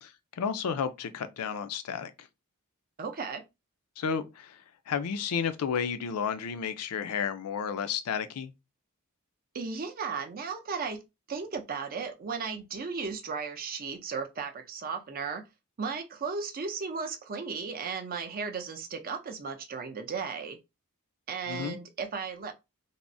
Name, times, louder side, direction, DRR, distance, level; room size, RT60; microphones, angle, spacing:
voice 1, 0.4-2.3 4.0-4.6 4.9-8.5 21.5-21.8, left 7 dB, 80° left, 0.4 m, -32 dB
voice 2, 3.0-3.4 9.5-11.0 11.3-15.4 15.8-20.6 21.3-22.5, right 5 dB, 40° right, 0.5 m, -35 dB
3.4 x 2.0 x 2.5 m
head